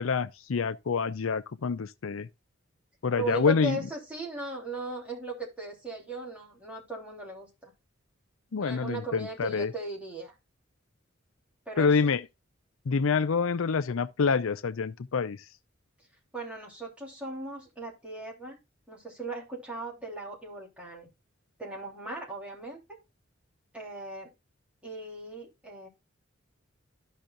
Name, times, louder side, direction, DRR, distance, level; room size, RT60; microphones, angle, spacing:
voice 1, 0.0-2.3 3.0-3.8 8.5-9.7 11.8-12.3 12.9-15.4, left 5 dB, 85° left, 0.5 m, -27 dB
voice 2, 3.2-7.7 8.6-10.3 11.7-12.1 16.3-18.6 18.9-21.1 21.6-22.8 23.7-24.3 24.8-25.9, right 2 dB, 5° right, 3.3 m, -38 dB
13.5 x 5.6 x 2.5 m
head